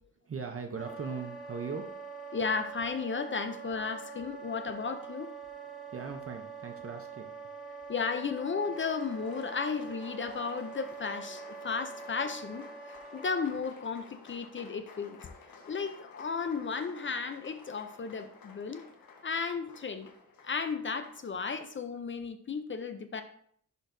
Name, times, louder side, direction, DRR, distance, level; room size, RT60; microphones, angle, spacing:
voice 1, 0.2-1.9 5.9-7.3, right 5 dB, 40° right, 4 dB, 0.6 m, -39 dB
Wind instrument woodwind instrument, 0.7-13.6, right 5 dB, ahead, 1.3 m, -45 dB
voice 2, 2.3-5.3 7.9-12.7 13.1-15.3 15.7-18.8 19.2-20.1 20.4-23.2, left 5 dB, 35° left, 9 dB, 0.4 m, -34 dB
Applause, 8.4-21.6, left 4 dB, 90° left, 1.2 m, -53 dB
10.5 x 4.4 x 2.6 m, 0.62 s
wide cardioid pair, 180°, 34 cm